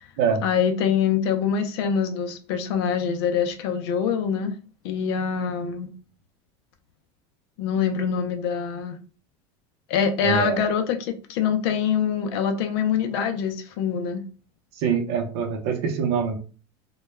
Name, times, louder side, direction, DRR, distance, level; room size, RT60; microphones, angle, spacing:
voice 1, 0.4-4.5 4.8-5.9 7.6-9.0 9.9-14.2, left 7 dB, 70° left, 0.5 m, -24 dB
voice 2, 10.2-10.6 14.8-16.4, right 6 dB, 65° right, 0.7 m, -24 dB
2.2 x 2.2 x 3.1 m
supercardioid pair, 160°, 14 cm